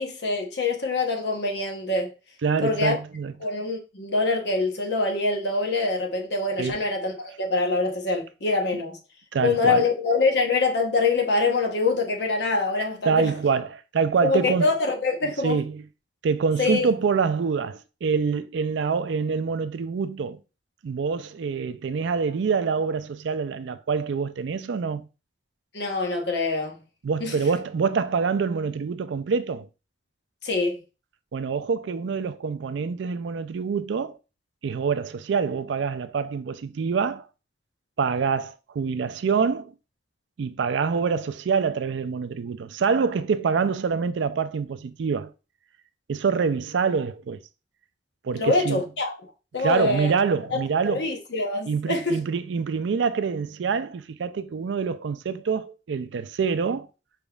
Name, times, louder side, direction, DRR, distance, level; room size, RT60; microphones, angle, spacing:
voice 1, 0.0-2.1 2.6-3.0 3.4-9.0 9.4-13.3 14.2-15.6 16.6-16.9 25.7-26.8 27.2-27.4 30.4-30.8 48.3-49.2 49.5-50.1 50.8-52.1, left 3 dB, 60° left, 0.9 m, -24 dB
voice 2, 2.4-3.3 6.6-6.8 9.3-9.8 13.1-14.7 15.4-15.8 16.2-20.4 20.8-25.1 27.0-29.7 31.3-34.2 34.6-37.3 38.0-39.7 40.4-45.3 46.1-47.4 48.2-48.8 49.6-51.1 51.7-56.9, right 5 dB, 75° right, 0.4 m, -26 dB
5.1 x 3.5 x 2.3 m
head